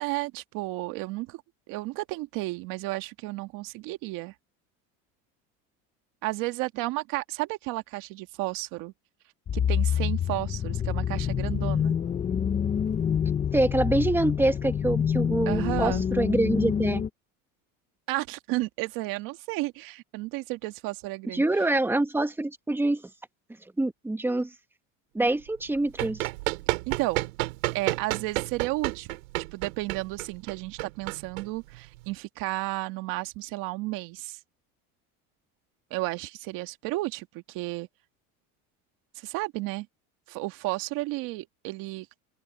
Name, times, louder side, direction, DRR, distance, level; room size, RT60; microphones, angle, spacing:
voice 1, 0.0-1.4 1.7-4.3 6.2-8.9 9.5-12.0 15.5-16.0 18.1-21.7 26.9-27.3 27.7-29.2 29.5-34.4 35.9-37.9 39.2-39.9 40.3-42.2, right 20 dB, 55° right, 1.9 m, -32 dB
sound 1, 9.5-17.1, left 8 dB, 20° left, 0.8 m, -27 dB
voice 2, 13.5-17.0 21.3-23.0 23.8-24.5 25.1-26.3, right 2 dB, 5° right, 1.5 m, -25 dB
Run, 25.6-32.1, right 21 dB, 90° right, 6.7 m, -31 dB
open air
supercardioid pair, 150°, 40 cm